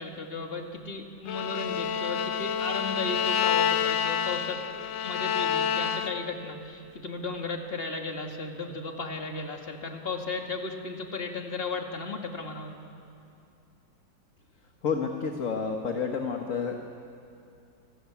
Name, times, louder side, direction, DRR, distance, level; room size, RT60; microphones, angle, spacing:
voice 1, 0.0-4.6 5.0-12.7, left 3 dB, 30° left, 3 dB, 2.2 m, -35 dB
Bowed string instrument, 1.3-6.4, left 8 dB, 75° left, 1.5 m, -28 dB
voice 2, 14.8-16.8, left 5 dB, 45° left, 3 dB, 1.7 m, -29 dB
28.0 x 19.5 x 8.6 m, 2.6 s
omnidirectional pair, 2.0 m